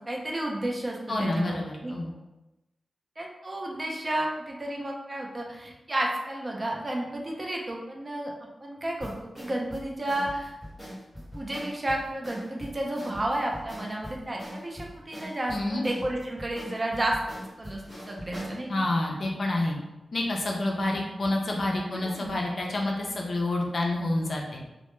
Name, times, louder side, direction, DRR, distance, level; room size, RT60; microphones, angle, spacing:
voice 1, 0.1-1.5 1.8-1.9 3.2-8.3 8.6-10.5 11.3-17.2 17.6-17.8 18.1-18.7 21.9-22.4, right 1 dB, 30° right, -1 dB, 0.4 m, -32 dB
voice 2, 1.1-2.1 15.5-15.9 18.7-19.8 20.1-24.6, left 2 dB, 55° left, 0 dB, 0.4 m, -28 dB
sound 1, 9.0-18.6, equal, 10° right, 1.1 m, -42 dB
2.1 x 2.0 x 3.0 m, 0.99 s
wide cardioid pair, 120°, 0 cm